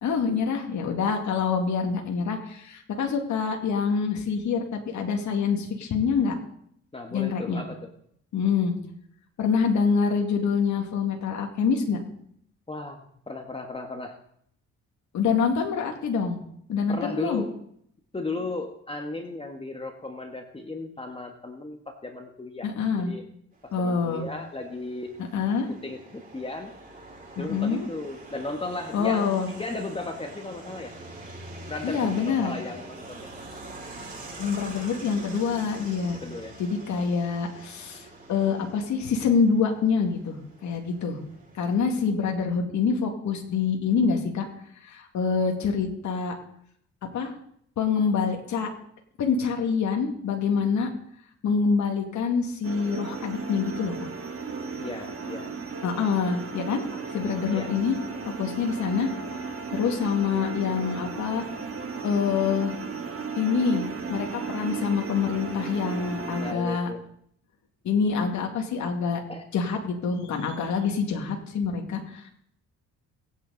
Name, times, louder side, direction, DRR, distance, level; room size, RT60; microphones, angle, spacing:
voice 1, 0.0-6.3 7.1-7.6 8.3-8.7 9.4-12.0 15.1-16.4 16.7-17.4 22.6-23.1 23.7-24.3 25.3-25.7 27.4-27.9 28.9-29.5 31.8-32.5 34.4-36.2 36.6-41.2 41.5-44.5 44.8-46.3 47.1-47.3 47.8-48.7 49.2-50.9 51.4-54.1 55.8-56.8 57.1-58.0 58.4-59.1 59.7-61.4 62.0-62.7 63.4-66.9 67.8-69.2 69.5-72.3, left 5 dB, 70° left, 2 dB, 2.4 m, -26 dB
voice 2, 6.9-7.8 12.7-14.2 16.9-17.5 18.1-22.7 23.1-23.2 23.6-25.1 25.7-26.7 27.4-30.9 31.7-33.4 36.1-36.6 54.8-55.5 56.9-57.0 57.5-57.7 58.1-58.5 66.3-67.0 69.3-69.4, left 2 dB, 20° left, 4 dB, 1.6 m, -35 dB
sound 1, 23.6-42.0, right 2 dB, 30° right, 5.6 m, -45 dB
sound 2, 52.6-66.5, right 5 dB, 45° right, 2.1 m, -35 dB
23.0 x 9.3 x 4.1 m, 0.68 s
cardioid pair, 90°, 30 cm